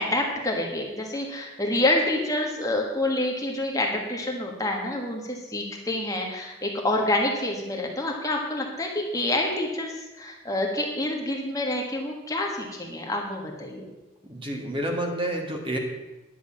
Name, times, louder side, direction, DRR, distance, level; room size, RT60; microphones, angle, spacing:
voice 1, 0.0-13.9, left 1 dB, 15° left, 0 dB, 1.5 m, -27 dB
voice 2, 14.3-15.8, right 1 dB, 25° right, 1 dB, 1.6 m, -29 dB
10.5 x 6.5 x 8.6 m, 1.1 s
head